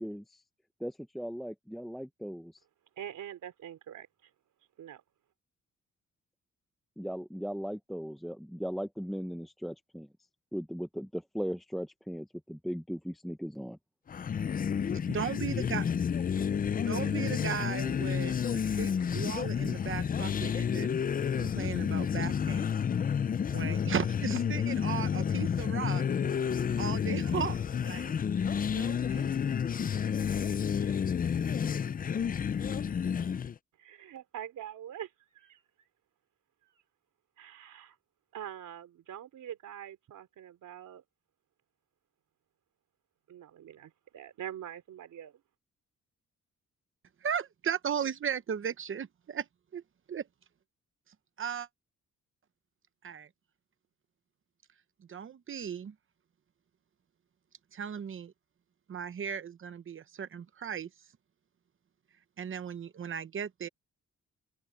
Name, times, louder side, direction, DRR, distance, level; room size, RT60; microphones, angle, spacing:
voice 1, 0.0-0.4 0.8-2.5 7.0-10.1 10.5-13.8, equal, ahead, 0.7 m, -38 dB
voice 2, 3.0-4.3 4.8-5.0 30.8-31.0 33.8-35.1 35.3-35.6 37.4-37.9 38.3-41.0 43.3-45.4, right 10 dB, 90° right, 3.3 m, -44 dB
sound 1, 14.1-33.6, left 7 dB, 30° left, 0.4 m, -30 dB
voice 3, 15.1-15.8 16.9-21.0 21.4-22.8 23.5-26.0 26.8-28.1 28.7-29.3 47.2-49.5 49.7-49.8 50.1-50.3 51.4-51.7 53.0-53.3 55.1-55.9 57.7-58.3 58.9-60.9 62.4-63.7, right 8 dB, 45° right, 0.9 m, -36 dB
open air
wide cardioid pair, 150°, 30 cm